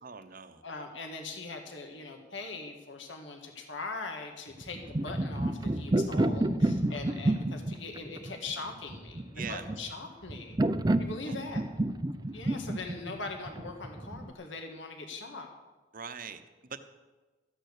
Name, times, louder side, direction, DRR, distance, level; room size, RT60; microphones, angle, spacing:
voice 1, 0.0-0.6 9.3-9.7 11.2-11.3 15.9-16.8, right 6 dB, 50° right, 10 dB, 0.8 m, -42 dB
voice 2, 0.6-10.6 11.0-11.6 12.3-15.5, left 3 dB, 80° left, 3 dB, 1.7 m, -41 dB
sound 1, 4.6-14.3, right 1 dB, 20° right, 0.5 m, -30 dB
13.5 x 9.2 x 6.6 m, 1.2 s
head